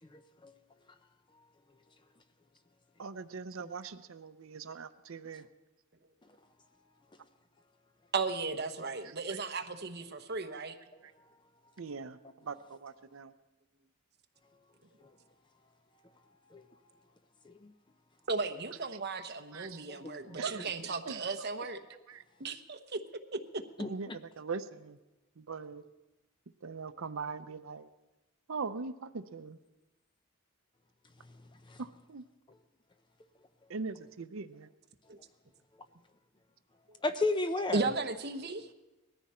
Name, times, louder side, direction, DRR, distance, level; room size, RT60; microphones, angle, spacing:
voice 1, 0.1-0.5 16.5-16.6 17.4-17.7 19.9-20.3 23.8-24.2 31.7-31.8 37.0-37.9, left 2 dB, 20° left, 0.6 m, -34 dB
voice 2, 3.0-5.4 9.0-9.4 11.8-13.3 19.5-19.8 20.4-21.2 22.1-22.2 23.9-25.0 25.4-25.8 26.6-27.9 28.5-29.6 31.8-32.2 33.7-34.7, right 4 dB, 70° right, 0.6 m, -41 dB
voice 3, 8.1-10.8 18.3-21.8 22.4-23.0 23.3-23.6 35.1-35.2 37.7-38.7, right 3 dB, 50° right, 1.0 m, -35 dB
19.5 x 14.0 x 4.3 m
head